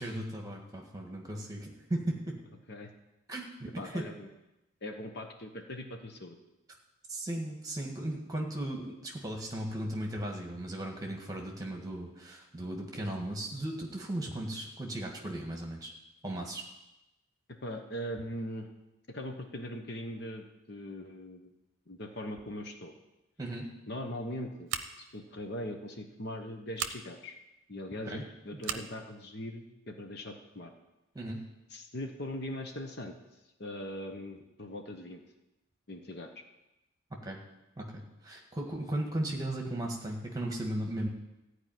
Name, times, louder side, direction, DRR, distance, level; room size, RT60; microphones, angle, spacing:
voice 1, 0.0-2.4 3.3-4.1 7.1-15.9 16.2-16.6 23.4-23.7 28.1-28.2 28.5-28.8 31.1-31.4 37.1-37.4 37.8-41.1, right 1 dB, 15° right, 1 dB, 1.7 m, -36 dB
voice 2, 3.8-4.3 4.8-6.4 17.5-18.7 19.1-21.5 21.9-22.9 23.9-24.7 25.0-27.4 27.7-30.7 31.7-33.2 33.6-35.2 35.9-36.3, left 1 dB, 50° left, 4 dB, 1.1 m, -40 dB
Scissors, 24.7-25.2 26.7-27.0 28.6-28.9, right 8 dB, 60° right, 0.8 m, -36 dB
14.5 x 4.9 x 9.2 m, 0.96 s
head